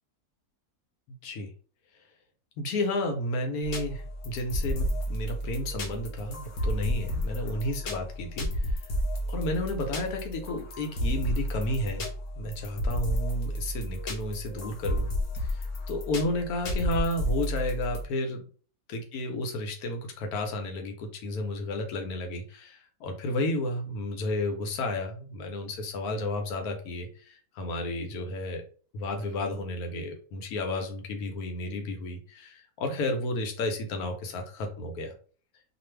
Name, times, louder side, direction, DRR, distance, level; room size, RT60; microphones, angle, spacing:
voice 1, 1.1-1.5 2.6-8.8 9.3-12.1 12.4-15.1 15.3-18.4 18.9-28.6 28.9-35.1, left 1 dB, 90° left, 4 dB, 1.2 m, -32 dB
sound 1, 3.6-18.0, equal, 60° left, 1.0 m, -32 dB
2.5 x 2.4 x 3.1 m, 0.42 s
omnidirectional pair, 1.6 m